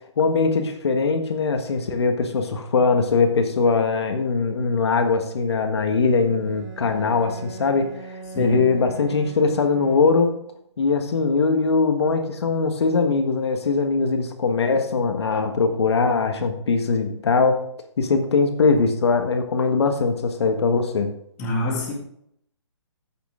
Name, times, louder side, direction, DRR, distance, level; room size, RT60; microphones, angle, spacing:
voice 1, 0.2-10.3 10.8-17.6 18.0-21.1, left 4 dB, 60° left, 6 dB, 1.6 m, -21 dB
Bowed string instrument, 6.2-10.6, right 4 dB, 5° right, 2.7 m, -40 dB
voice 2, 21.4-21.9, left 1 dB, 15° left, -1 dB, 2.0 m, -26 dB
14.5 x 6.4 x 3.7 m, 0.71 s
hypercardioid pair, 170°, 15 cm